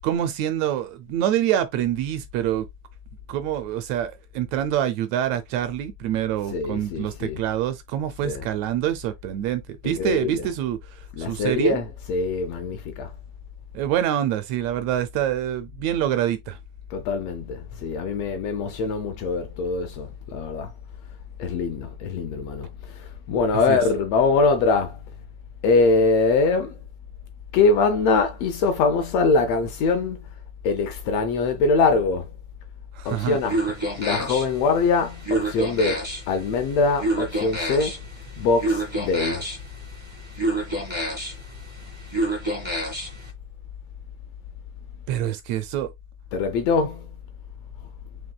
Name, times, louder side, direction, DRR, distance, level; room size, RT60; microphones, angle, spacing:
voice 1, 0.0-2.7 3.3-11.8 13.7-16.6 23.7-23.8 32.9-33.4 45.1-45.9, right 11 dB, 80° right, 1.6 m, -26 dB
voice 2, 6.5-7.4 8.2-8.5 9.8-10.5 11.2-13.1 16.9-20.7 21.4-25.0 25.6-26.8 27.5-30.2 30.6-32.3 33.0-33.6 34.0-38.0 38.4-39.4 46.3-47.1, left 4 dB, 80° left, 1.5 m, -23 dB
sound 1, 33.1-43.3, right 1 dB, 30° right, 0.5 m, -29 dB
5.9 x 2.9 x 2.3 m
omnidirectional pair, 3.4 m